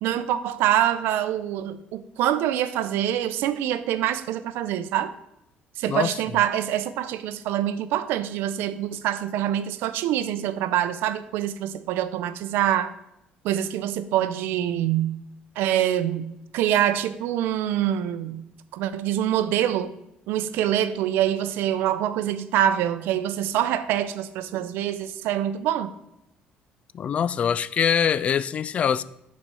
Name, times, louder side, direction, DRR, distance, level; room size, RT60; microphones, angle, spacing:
voice 1, 0.0-5.1 5.8-12.9 13.4-15.2 15.6-18.4 18.7-19.9 20.3-25.9, right 11 dB, 80° right, 0.6 m, -25 dB
voice 2, 26.9-29.0, left 8 dB, 35° left, 0.3 m, -23 dB
8.7 x 4.2 x 6.1 m
cardioid pair, 140°, 4 cm